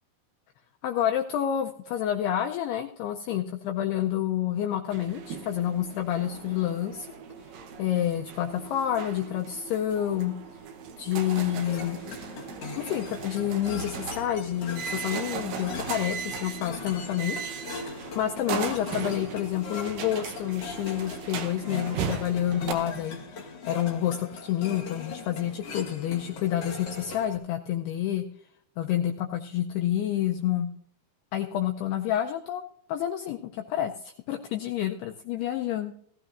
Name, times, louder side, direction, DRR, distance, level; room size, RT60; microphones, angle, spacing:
voice 1, 0.8-7.1 7.8-10.3 11.0-12.0 12.7-28.3 28.8-30.7 31.3-32.6 32.9-35.9, left 11 dB, 90° left, 4 dB, 2.3 m, -29 dB
sound 1, 4.9-22.7, right 6 dB, 80° right, 1.9 m, -38 dB
sound 2, 11.4-27.4, left 4 dB, 60° left, 1.6 m, -40 dB
18.5 x 14.0 x 2.6 m, 0.67 s
omnidirectional pair, 5.4 m